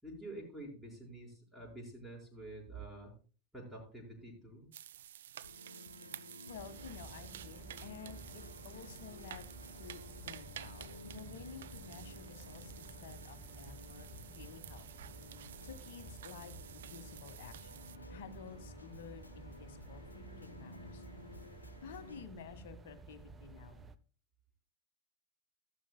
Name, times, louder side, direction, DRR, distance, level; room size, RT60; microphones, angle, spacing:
voice 1, 0.0-3.1 3.5-4.7, right 2 dB, ahead, -4 dB, 6.1 m, -48 dB
sound 1, 4.7-18.0, right 11 dB, 60° right, 0.5 m, -52 dB
sound 2, 5.4-22.2, left 3 dB, 85° left, 0.9 m, -54 dB
voice 2, 6.5-14.9 15.6-21.0 21.8-23.9, left 6 dB, 55° left, 8 dB, 1.7 m, -52 dB
sound 3, 6.5-24.0, right 4 dB, 20° right, 0.8 m, -53 dB
14.5 x 12.0 x 2.3 m, 0.38 s
figure-of-eight pair, 90°, 0 cm